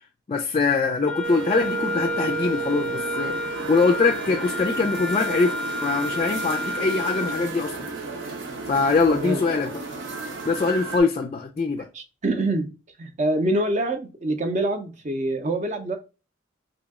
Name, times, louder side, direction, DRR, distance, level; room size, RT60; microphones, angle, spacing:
voice 1, 0.3-7.9 8.7-9.7 10.5-11.9, left 4 dB, 30° left, 0.3 m, -23 dB
Wind instrument woodwind instrument, 1.0-7.5, equal, 5° left, 0.7 m, -30 dB
sound 1, 1.2-11.0, right 3 dB, 85° right, 0.8 m, -34 dB
voice 2, 9.1-9.6 11.9-12.7 13.0-16.0, right 1 dB, 40° right, 0.5 m, -25 dB
3.0 x 2.7 x 3.5 m
head